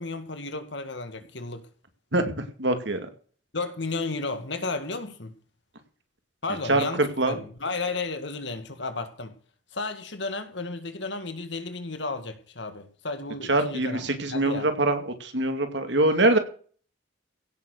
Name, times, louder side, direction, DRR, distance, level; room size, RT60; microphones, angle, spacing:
voice 1, 0.0-1.7 3.5-5.3 6.4-9.3 9.7-14.7, left 3 dB, 65° left, 2.0 m, -33 dB
voice 2, 2.1-3.0 6.6-7.4 13.5-16.4, right 2 dB, 65° right, 2.3 m, -24 dB
16.5 x 7.0 x 6.6 m
head